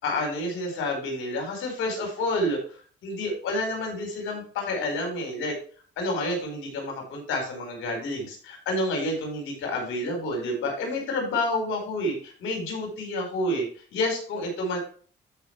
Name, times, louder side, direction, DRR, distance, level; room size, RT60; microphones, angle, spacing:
voice 1, 0.0-2.6 3.0-5.5 6.0-13.6 13.9-14.8, left 1 dB, 85° left, 1 dB, 5.1 m, -29 dB
13.0 x 5.6 x 3.4 m, 0.42 s
cardioid pair, 90°, 20 cm